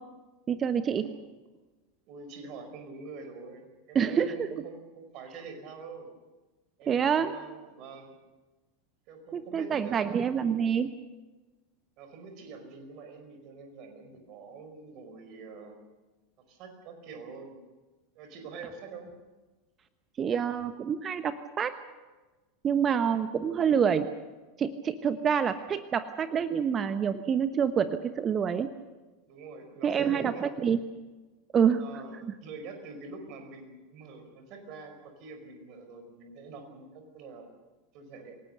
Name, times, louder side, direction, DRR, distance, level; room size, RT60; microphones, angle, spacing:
voice 1, 0.5-1.1 3.9-4.5 6.9-7.3 9.3-10.9 20.2-21.8 22.6-24.1 24.6-28.7 29.8-30.8 31.5-31.8 32.2-32.3, right 7 dB, 30° right, 11 dB, 1.1 m, -27 dB
voice 2, 2.1-6.1 6.8-8.2 9.1-10.3 12.0-15.8 16.5-17.6 18.1-19.1 22.8-23.1 29.3-30.9 31.8-37.5 37.9-38.4, right 4 dB, 45° right, 6 dB, 5.0 m, -45 dB
27.5 x 18.0 x 6.8 m, 1.2 s
figure-of-eight pair, 85°, 0 cm